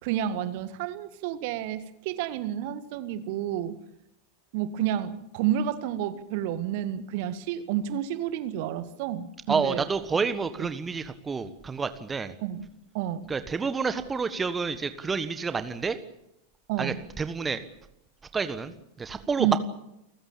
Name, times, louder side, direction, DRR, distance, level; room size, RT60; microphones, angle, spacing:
voice 1, 0.0-3.8 4.5-9.8 10.6-10.7 12.4-12.7 12.9-13.3 16.7-17.0 19.4-19.6, right 11 dB, 50° right, 12 dB, 1.7 m, -30 dB
voice 2, 9.5-12.3 13.3-16.0 16.8-17.6 18.3-19.6, right 5 dB, 15° right, 11 dB, 1.4 m, -29 dB
29.5 x 15.0 x 8.7 m, 0.82 s
figure-of-eight pair, 90°, 0 cm